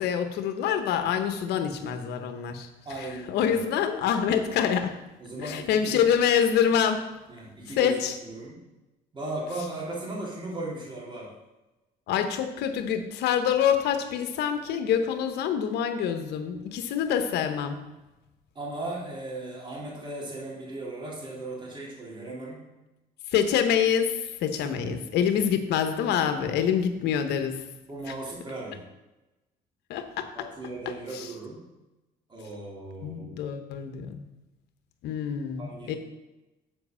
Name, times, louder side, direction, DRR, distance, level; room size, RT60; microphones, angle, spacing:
voice 1, 0.0-2.7 3.0-5.0 5.4-7.1 7.8-8.2 12.1-17.8 23.3-27.6 28.1-28.2 29.9-30.3 31.1-31.3 33.0-34.3 35.0-36.0, left 8 dB, 80° left, 8 dB, 1.0 m, -26 dB
voice 2, 2.8-3.6 5.2-6.0 7.3-8.6 9.1-11.3 18.5-22.6 24.6-25.1 27.9-28.8 30.3-31.6 32.3-33.4 35.6-36.0, right 2 dB, 30° right, -4 dB, 3.3 m, -37 dB
7.8 x 5.1 x 7.0 m, 1.0 s
cardioid pair, 110°, 17 cm